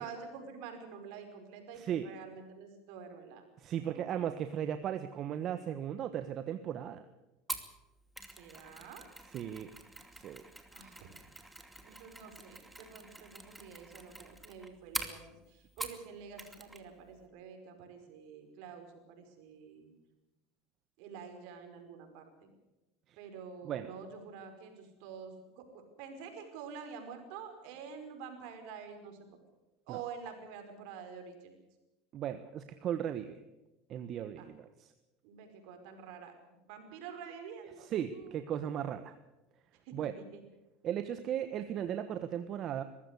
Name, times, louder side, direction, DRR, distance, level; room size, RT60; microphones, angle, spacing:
voice 1, 0.0-3.4 3.7-4.3 8.4-9.1 10.7-11.1 11.8-15.2 15.5-19.9 21.0-22.5 23.2-29.2 29.9-31.5 34.4-34.5 35.2-36.3 36.7-38.4 40.3-40.4, right 6 dB, 65° right, 5 dB, 5.3 m, -48 dB
voice 2, 1.7-2.1 3.6-7.0 9.3-9.7 10.1-10.4 11.9-12.0 23.1-23.2 23.6-23.9 29.9-30.0 32.1-33.4 33.9-34.9 37.8-39.1 39.9-40.1 40.8-42.8, right 10 dB, 45° right, 10 dB, 1.2 m, -36 dB
Mechanisms, 7.5-16.1 16.4-16.8 17.1-17.2, right 1 dB, 5° right, 2.6 m, -45 dB
22.0 x 15.0 x 8.3 m, 1.0 s
supercardioid pair, 100°, 0 cm